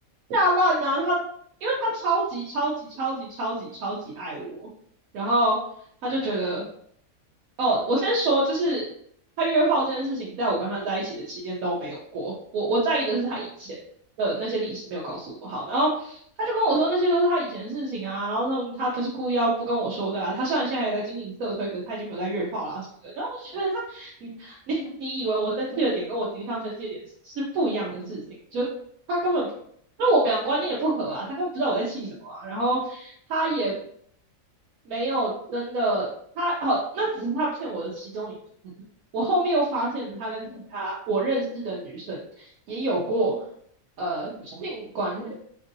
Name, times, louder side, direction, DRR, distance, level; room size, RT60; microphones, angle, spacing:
voice 1, 0.3-1.1 1.6-4.7 5.1-5.6 6.0-6.6 7.6-8.8 9.4-13.8 14.2-27.0 27.2-28.2 28.5-28.7 29.1-29.5 30.0-33.7 34.9-36.1 36.4-38.3 39.1-43.3 44.0-45.3, right 1 dB, 85° right, -5 dB, 1.1 m, -26 dB
3.0 x 2.6 x 2.5 m, 0.64 s
omnidirectional pair, 1.5 m